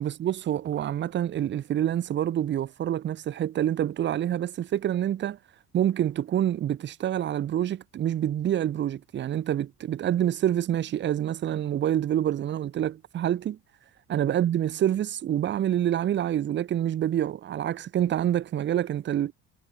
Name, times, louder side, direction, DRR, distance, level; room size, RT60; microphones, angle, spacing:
voice 1, 0.0-5.4 5.7-13.6 14.1-19.3, right 11 dB, 35° right, 0.5 m, -27 dB
supercardioid pair, 80°, 35 cm